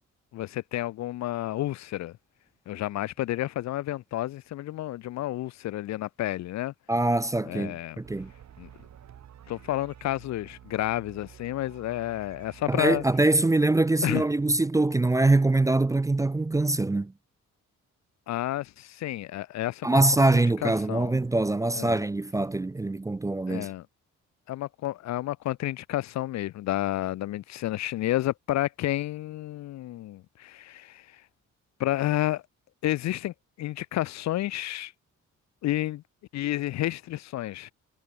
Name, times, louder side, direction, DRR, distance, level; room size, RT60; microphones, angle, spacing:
voice 1, 0.3-2.1 2.7-6.7 7.4-8.0 8.6-8.7 9.5-13.0 14.0-14.2 18.3-20.0 20.3-21.1 21.7-22.0 23.5-23.8 24.5-31.0 31.8-32.4 32.8-34.9 35.6-36.0 36.3-37.7, left 15 dB, 65° left, 0.5 m, -30 dB
voice 2, 6.9-8.3 12.7-17.1 19.8-23.7, right 2 dB, 10° right, 0.4 m, -23 dB
sound 1, 8.0-13.1, right 10 dB, 65° right, 5.6 m, -50 dB
cardioid pair, 90°, 30 cm